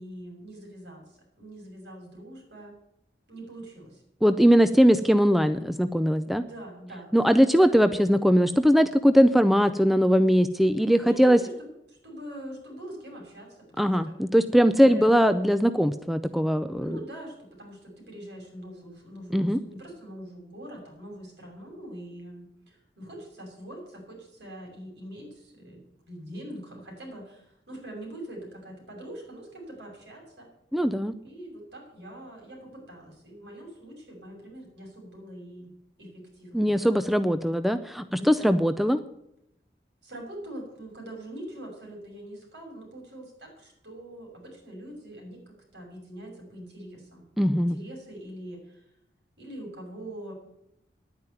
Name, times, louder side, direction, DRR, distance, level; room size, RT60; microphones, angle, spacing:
voice 1, 0.0-2.7 3.3-4.0 6.2-7.8 11.0-11.5 11.9-14.1 14.8-15.2 16.8-30.5 31.2-35.7 36.0-36.7 38.1-38.6 40.0-47.2 47.6-48.8 49.4-50.3, right 1 dB, 75° right, 0 dB, 6.5 m, -43 dB
voice 2, 4.2-6.4 7.1-11.4 13.8-17.0 19.3-19.6 30.7-31.1 36.5-39.0 47.4-47.8, equal, ahead, 11 dB, 0.4 m, -21 dB
10.5 x 9.4 x 9.2 m, 0.80 s
head